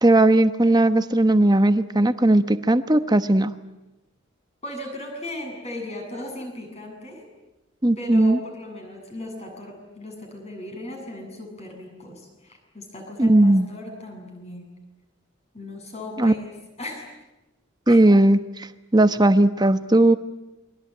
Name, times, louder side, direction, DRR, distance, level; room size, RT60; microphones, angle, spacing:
voice 1, 0.0-3.5 7.8-8.4 13.2-13.7 16.2-16.3 17.9-20.2, right 1 dB, 20° right, 11 dB, 1.0 m, -17 dB
voice 2, 4.6-7.3 8.0-14.7 15.5-16.5 16.8-17.0 17.9-18.0, left 1 dB, 30° left, 2 dB, 7.7 m, -37 dB
28.5 x 22.5 x 9.1 m, 1.0 s
head